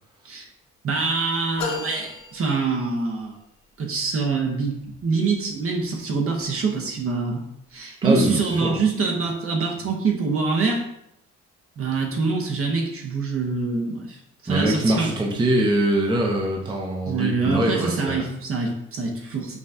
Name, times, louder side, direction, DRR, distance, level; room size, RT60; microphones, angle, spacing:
voice 1, 0.8-3.4 3.8-7.4 7.7-10.8 11.8-14.2 14.4-15.1 17.1-19.6, right 4 dB, 50° right, 1 dB, 0.9 m, -25 dB
sound 1, 1.6-3.3, left 5 dB, 90° left, 0.7 m, -34 dB
voice 2, 8.0-8.8 14.5-18.3, right 1 dB, 15° right, -1 dB, 0.7 m, -23 dB
5.8 x 2.3 x 2.8 m, 0.78 s
cardioid pair, 90°, 30 cm